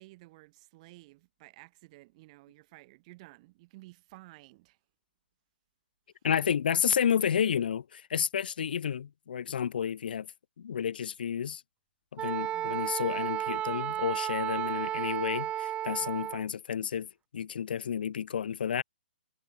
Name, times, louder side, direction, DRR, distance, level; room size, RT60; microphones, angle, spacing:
voice 1, 0.0-4.8 12.5-12.9, right 21 dB, 40° right, 7.1 m, -54 dB
voice 2, 6.2-10.3 10.6-11.6 12.1-18.8, left 8 dB, 60° left, 1.8 m, -31 dB
Wind instrument woodwind instrument, 12.2-16.4, right 12 dB, 20° right, 1.5 m, -33 dB
figure-of-eight pair, 125°, 6 cm